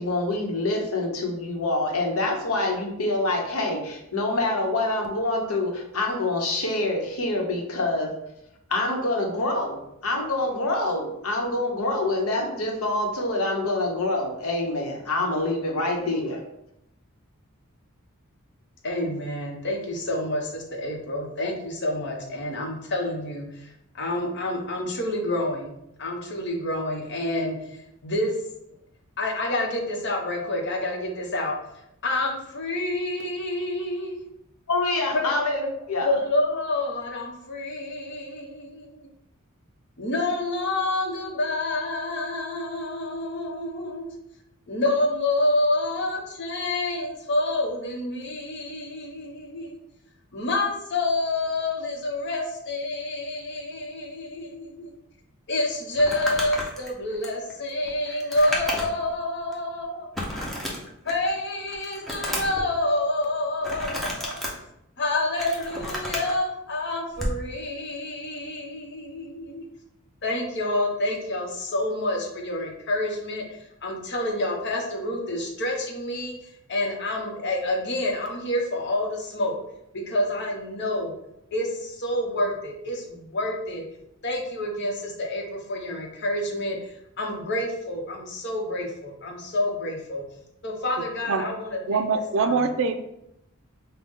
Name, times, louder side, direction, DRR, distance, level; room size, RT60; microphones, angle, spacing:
voice 1, 0.0-8.1 8.7-16.4 34.7-36.1 44.9-45.0, left 2 dB, 85° left, 1 dB, 0.9 m, -26 dB
voice 2, 18.8-28.3 29.2-31.6 32.0-34.2 35.1-35.3 36.1-39.1 40.0-44.1 44.7-49.8 50.3-54.9 55.5-60.1 61.0-64.4 65.0-69.7 70.2-76.4 76.7-79.6 79.9-81.1 81.5-83.9 84.2-86.9 87.2-90.2 90.6-92.0 92.4-92.7, left 1 dB, 55° left, 0 dB, 0.9 m, -28 dB
Crumpling crinkling, 55.9-59.1 59.5-59.6 60.1-61.3 61.7-62.6 63.6-64.5 65.1-66.3 67.1-67.4, left 1 dB, ahead, 0.7 m, -31 dB
voice 3, 91.9-92.9, right 4 dB, 60° right, 8 dB, 0.4 m, -23 dB
5.4 x 2.2 x 3.6 m, 0.81 s
head